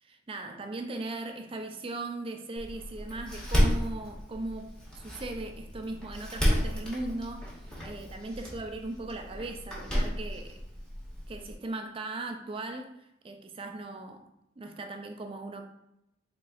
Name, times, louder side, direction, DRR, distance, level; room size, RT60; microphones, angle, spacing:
voice 1, 0.0-10.6 11.3-14.3 14.6-15.6, right 2 dB, 25° right, 0.4 m, -38 dB
Door, 2.6-11.5, equal, 5° left, 1.0 m, -32 dB
4.0 x 3.7 x 2.4 m
head